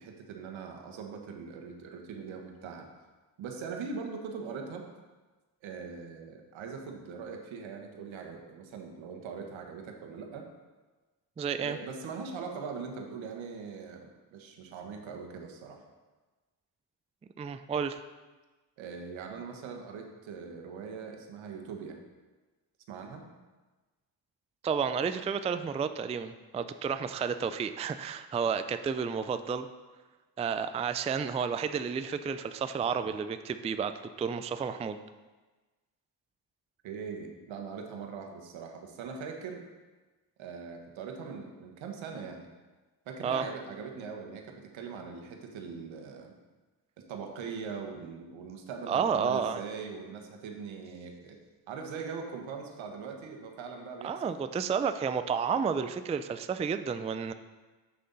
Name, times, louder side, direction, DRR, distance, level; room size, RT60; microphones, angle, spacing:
voice 1, 0.0-2.9 3.4-4.9 5.6-10.5 11.6-15.8 18.8-22.0 22.9-23.3 36.8-39.6 40.4-42.5 43.0-46.3 47.0-51.4 51.7-54.4, right 5 dB, 75° right, 3 dB, 1.3 m, -41 dB
voice 2, 11.4-11.8 17.4-18.0 24.6-29.7 30.4-35.0 43.2-43.5 48.9-49.6 54.0-57.3, right 6 dB, 15° right, 10 dB, 0.3 m, -31 dB
7.7 x 6.3 x 4.0 m, 1.3 s
supercardioid pair, 60°, 47 cm